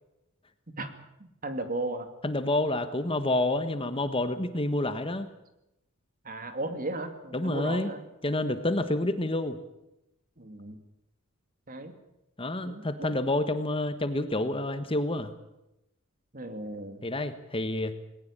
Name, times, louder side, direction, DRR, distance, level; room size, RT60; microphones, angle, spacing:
voice 1, 1.2-2.1 6.2-8.0 10.4-10.8 11.7-11.9 12.6-13.2 16.3-17.0, right 2 dB, 40° right, 8 dB, 2.6 m, -35 dB
voice 2, 2.2-5.3 7.3-7.9 8.2-9.6 12.4-15.3 17.0-18.0, left 1 dB, 25° left, 10 dB, 1.4 m, -28 dB
20.0 x 18.5 x 8.9 m, 0.88 s
head